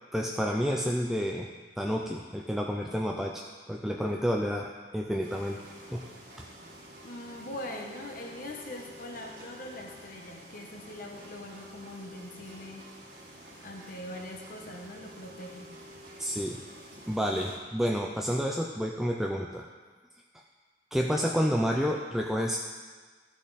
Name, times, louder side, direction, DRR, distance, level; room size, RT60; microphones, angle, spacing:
voice 1, 0.1-1.5 1.8-5.6 5.9-6.1 6.4-6.5 16.2-16.6 17.1-19.7 20.9-22.6, equal, ahead, 0 dB, 0.5 m, -30 dB
sound 1, 5.2-17.6, equal, 60° right, 2.1 m, -49 dB
voice 2, 7.0-12.9 13.6-15.8, left 1 dB, 55° left, 1 dB, 1.1 m, -42 dB
14.5 x 6.2 x 4.1 m, 1.5 s
head